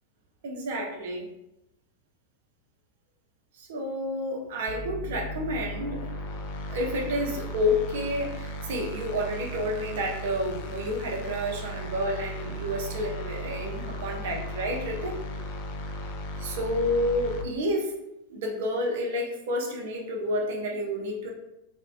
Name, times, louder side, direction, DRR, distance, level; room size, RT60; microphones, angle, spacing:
voice 1, 0.4-1.3 3.5-6.1 6.7-15.2 16.4-17.9 18.3-21.3, left 1 dB, 55° right, 1 dB, 0.5 m, -30 dB
sound 1, 4.7-17.4, equal, 50° left, 0.3 m, -36 dB
2.4 x 2.1 x 2.4 m, 0.88 s
figure-of-eight pair, 90°, 0 cm